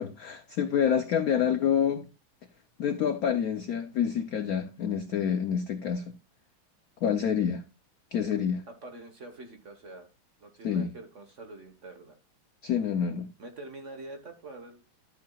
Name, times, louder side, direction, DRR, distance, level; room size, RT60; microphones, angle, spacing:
voice 1, 0.0-2.1 2.8-6.1 7.0-7.6 8.1-8.6 10.6-10.9 12.6-13.3, left 8 dB, 70° left, 0.9 m, -27 dB
voice 2, 8.7-10.1 10.4-12.2 13.4-14.8, right 2 dB, 40° right, 1.4 m, -45 dB
12.5 x 8.4 x 2.3 m
omnidirectional pair, 2.3 m